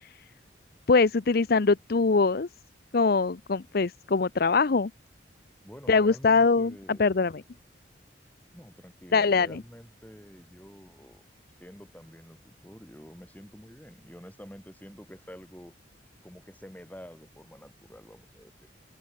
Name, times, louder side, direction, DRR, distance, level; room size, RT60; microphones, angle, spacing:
voice 1, 0.9-2.5 2.9-4.9 5.9-7.3 9.1-9.6, left 4 dB, 55° left, 0.6 m, -23 dB
voice 2, 5.6-7.1 8.5-11.2 11.6-15.7 16.2-18.7, equal, 10° left, 7.6 m, -48 dB
open air
head